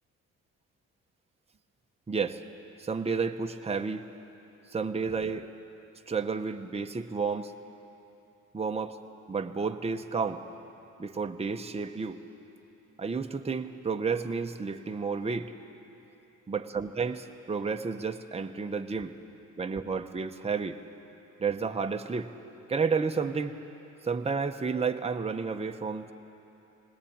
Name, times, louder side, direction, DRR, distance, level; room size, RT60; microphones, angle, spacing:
voice 1, 2.1-2.4 2.8-4.0 4.7-5.5 6.1-7.5 8.5-9.0 9.3-10.4 11.0-12.2 13.0-15.5 16.5-19.1 19.6-20.8 21.4-22.3 22.7-23.6 24.0-26.1, right 5 dB, 20° right, 5 dB, 1.0 m, -31 dB
20.0 x 19.0 x 8.7 m, 2.9 s
cardioid pair, 90°, 30 cm